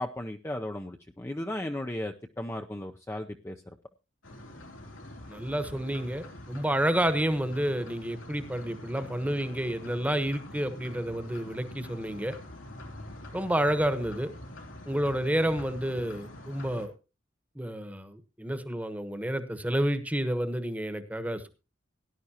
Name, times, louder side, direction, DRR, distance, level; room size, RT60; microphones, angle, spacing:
voice 1, 0.0-3.6, left 1 dB, 15° left, 4 dB, 0.6 m, -35 dB
sound 1, 4.2-16.9, left 1 dB, 85° left, 3.0 m, -45 dB
voice 2, 5.3-12.3 13.3-14.3 14.9-16.9 17.5-21.5, right 1 dB, 10° right, 10 dB, 1.1 m, -30 dB
18.0 x 11.0 x 2.9 m, 0.30 s
head